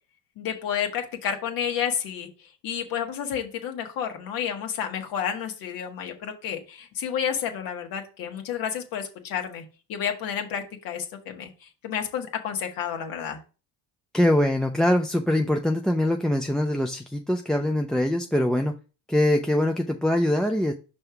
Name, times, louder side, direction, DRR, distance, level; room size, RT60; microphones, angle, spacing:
voice 1, 0.4-2.3 2.6-9.6 9.9-13.4, left 8 dB, 65° left, 3 dB, 1.5 m, -30 dB
voice 2, 14.1-18.7 19.1-20.7, left 1 dB, ahead, 4 dB, 0.3 m, -23 dB
5.4 x 3.4 x 5.6 m, 0.33 s
cardioid pair, 120°, 37 cm